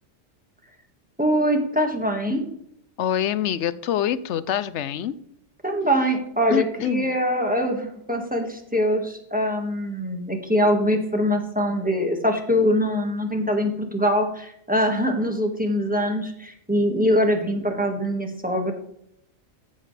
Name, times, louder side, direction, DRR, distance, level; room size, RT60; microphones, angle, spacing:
voice 1, 1.2-2.4 5.6-18.7, equal, 5° right, 3 dB, 1.6 m, -23 dB
voice 2, 3.0-5.1 6.5-7.1, left 10 dB, 65° left, 15 dB, 0.9 m, -25 dB
14.5 x 7.4 x 3.3 m, 0.71 s
omnidirectional pair, 1.4 m